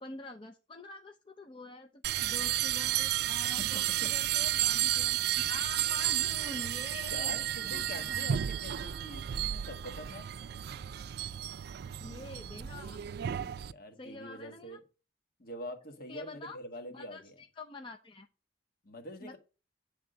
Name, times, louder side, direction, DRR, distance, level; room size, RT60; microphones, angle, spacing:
voice 1, 0.0-7.4 7.7-8.4 12.0-13.0 14.0-14.8 16.1-16.6 16.9-18.3 19.2-19.4, left 2 dB, 30° left, 0.6 m, -46 dB
sound 1, 2.0-13.7, right 12 dB, 60° right, 0.4 m, -32 dB
voice 2, 3.6-4.5 7.1-10.3 13.7-14.8 15.4-17.3 18.8-19.4, left 1 dB, 55° left, 1.4 m, -45 dB
9.0 x 3.5 x 6.5 m
head